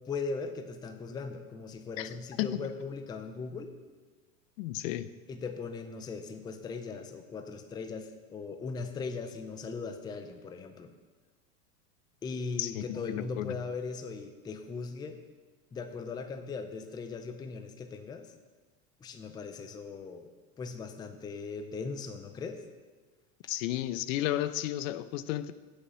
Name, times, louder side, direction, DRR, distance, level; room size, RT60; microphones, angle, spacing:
voice 1, 0.1-3.7 5.3-10.9 12.2-15.2 15.7-18.3 19.0-20.3 20.6-22.6, left 4 dB, 10° left, 0.4 m, -39 dB
voice 2, 4.6-5.1 12.6-13.5 23.5-25.5, left 14 dB, 65° left, 0.6 m, -33 dB
8.0 x 6.6 x 6.2 m
supercardioid pair, 130°, 42 cm